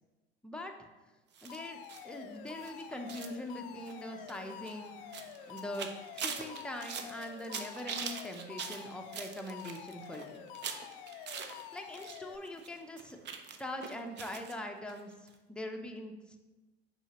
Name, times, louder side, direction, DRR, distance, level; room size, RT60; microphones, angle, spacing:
sound 1, 1.3-12.2 12.4-14.5 14.9-15.0 15.3-15.4, right 6 dB, 35° right, 0.7 m, -44 dB
voice 1, 1.4-5.0 5.5-5.9 6.1-10.4 11.7-13.2 13.6-16.4, left 1 dB, 5° left, 3 dB, 0.7 m, -42 dB
Alarm, 1.5-12.4, left 10 dB, 65° left, 0.5 m, -48 dB
7.0 x 4.8 x 2.9 m, 1.1 s
hypercardioid pair, 75°, 30 cm